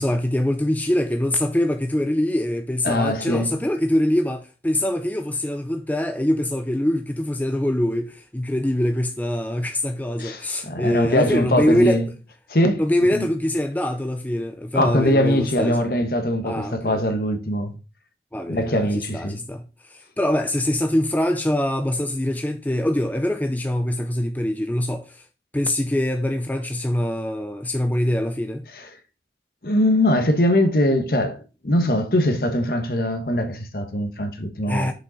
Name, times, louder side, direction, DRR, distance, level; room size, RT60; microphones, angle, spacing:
voice 1, 0.0-12.0 12.8-15.9 16.4-17.0 18.3-25.3 25.5-28.6 34.7-34.9, left 1 dB, 10° left, 0.4 m, -24 dB
voice 2, 2.8-3.5 10.2-12.1 12.5-12.8 13.1-13.2 14.7-17.7 18.5-19.4 29.6-31.4 31.6-34.9, left 1 dB, 55° left, 1.2 m, -21 dB
6.6 x 5.3 x 4.0 m
head